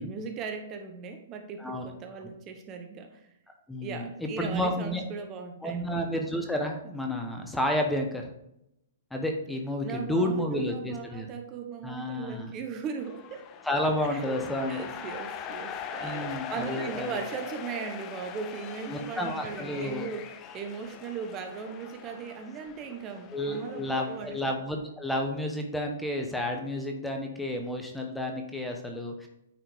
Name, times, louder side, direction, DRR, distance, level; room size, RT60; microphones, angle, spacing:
voice 1, 0.0-3.3 3.8-6.0 9.8-13.5 14.1-24.4, right 6 dB, 30° right, 5 dB, 0.9 m, -38 dB
voice 2, 3.7-5.0 5.6-8.3 9.1-11.3 11.8-12.5 13.6-14.8 16.0-17.2 18.9-20.1 23.3-29.3, left 1 dB, 5° left, 3 dB, 1.0 m, -31 dB
sound 1, 13.0-24.5, left 8 dB, 30° left, 0.7 m, -42 dB
9.1 x 4.5 x 3.5 m, 0.80 s
hypercardioid pair, 130°, 0 cm